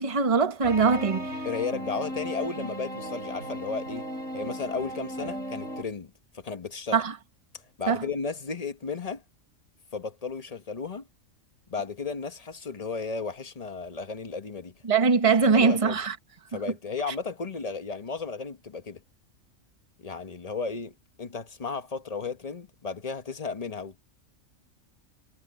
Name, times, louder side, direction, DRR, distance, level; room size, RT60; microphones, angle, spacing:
voice 1, 0.0-1.3 6.9-7.1 7.9-8.0 14.8-16.1, right 5 dB, 25° right, 1.3 m, -22 dB
sound 1, 0.6-5.8, equal, 75° right, 5.2 m, -36 dB
voice 2, 1.4-4.1 4.3-7.0 7.8-9.2 9.9-11.0 11.7-14.7 15.5-16.0 16.5-19.0 20.0-24.0, left 4 dB, 30° left, 1.1 m, -34 dB
omnidirectional pair, 1.3 m